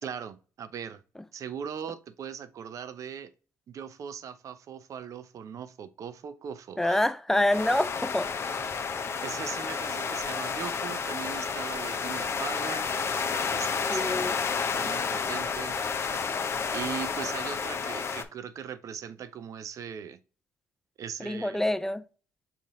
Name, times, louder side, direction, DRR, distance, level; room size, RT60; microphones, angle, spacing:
voice 1, 0.0-1.0 1.3-3.3 3.7-7.0 9.2-12.9 13.5-15.8 16.7-20.2 21.0-21.7, right 7 dB, 55° right, 0.5 m, -39 dB
voice 2, 6.8-8.3 13.9-14.4 21.2-22.0, left 1 dB, 5° left, 0.4 m, -26 dB
sound 1, 7.5-18.2, left 5 dB, 40° left, 0.7 m, -31 dB
5.5 x 2.7 x 3.6 m
supercardioid pair, 70°, 7 cm